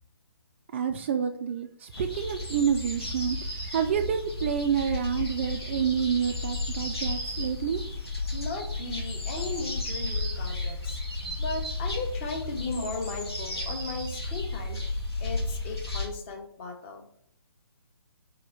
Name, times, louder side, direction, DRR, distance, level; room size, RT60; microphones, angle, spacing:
voice 1, 0.7-3.4 3.7-7.8, right 8 dB, 30° right, 7 dB, 0.4 m, -28 dB
sound 1, 1.9-16.1, left 2 dB, 80° left, 2.9 m, -33 dB
voice 2, 8.3-11.0 11.4-17.1, left 3 dB, 30° left, 2 dB, 1.4 m, -36 dB
4.8 x 4.6 x 5.8 m, 0.66 s
figure-of-eight pair, 135°, 13 cm